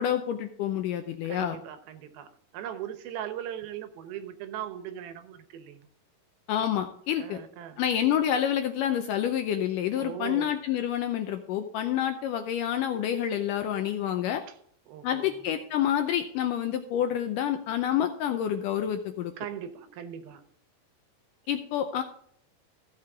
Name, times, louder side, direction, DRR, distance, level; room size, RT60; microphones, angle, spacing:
voice 1, 0.0-1.6 6.5-7.4 7.8-14.4 15.0-19.3 21.5-22.0, left 10 dB, 80° left, 7 dB, 2.0 m, -28 dB
voice 2, 1.2-5.9 7.2-7.8 10.0-10.5 14.5-14.6 14.9-15.4 19.4-20.5, right 10 dB, 80° right, 10 dB, 2.8 m, -39 dB
14.5 x 6.7 x 3.5 m, 0.64 s
omnidirectional pair, 4.3 m